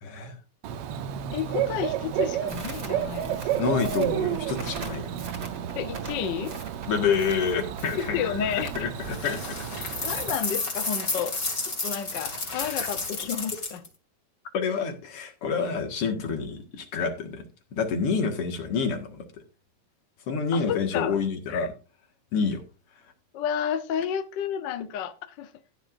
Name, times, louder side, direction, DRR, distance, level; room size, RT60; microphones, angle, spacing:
voice 1, 0.0-0.4 3.5-5.1 6.9-9.6 10.1-10.2 12.5-12.9 14.5-17.4 17.7-19.3 20.3-21.7 22.3-22.6, left 5 dB, 55° left, 2.6 m, -28 dB
Bird / Cricket, 0.6-10.4, right 10 dB, 70° right, 1.6 m, -32 dB
voice 2, 1.3-3.8 5.7-6.5 8.0-8.9 10.0-11.4 11.8-13.8 20.5-21.2 21.5-21.7 23.3-25.5, left 8 dB, 85° left, 1.0 m, -31 dB
Crackle, 2.5-8.8, right 4 dB, 35° right, 2.7 m, -41 dB
sound 1, 9.0-13.9, left 3 dB, 30° left, 2.9 m, -31 dB
15.0 x 10.0 x 2.6 m
omnidirectional pair, 3.3 m